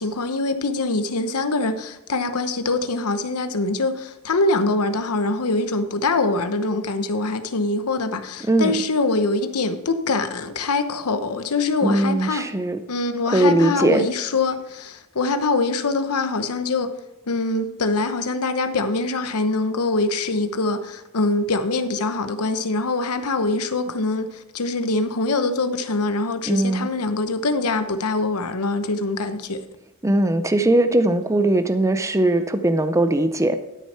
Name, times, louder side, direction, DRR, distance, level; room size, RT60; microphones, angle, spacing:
voice 1, 0.0-12.5 12.9-16.9 17.3-29.6, left 3 dB, 80° left, 0.9 m, -24 dB
voice 2, 8.5-8.8 11.8-12.8 13.3-14.1 26.5-26.9 30.0-33.6, right 1 dB, 15° right, 0.5 m, -20 dB
12.0 x 6.7 x 4.4 m
head